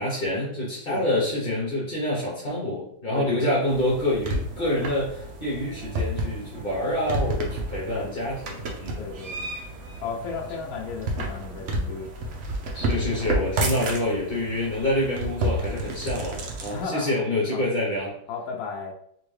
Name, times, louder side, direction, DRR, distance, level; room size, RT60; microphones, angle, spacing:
voice 1, 0.0-9.0 12.7-18.2, left 1 dB, 40° left, -6 dB, 0.8 m, -27 dB
voice 2, 3.1-3.5 7.9-8.1 9.0-9.5 10.0-12.1 13.6-13.7 16.7-17.2 17.5-17.6 18.3-18.9, left 5 dB, 70° left, -1 dB, 0.8 m, -34 dB
sound 1, 3.7-16.9, right 1 dB, 80° right, 0.6 m, -31 dB
3.6 x 2.7 x 3.2 m, 0.69 s
omnidirectional pair, 2.1 m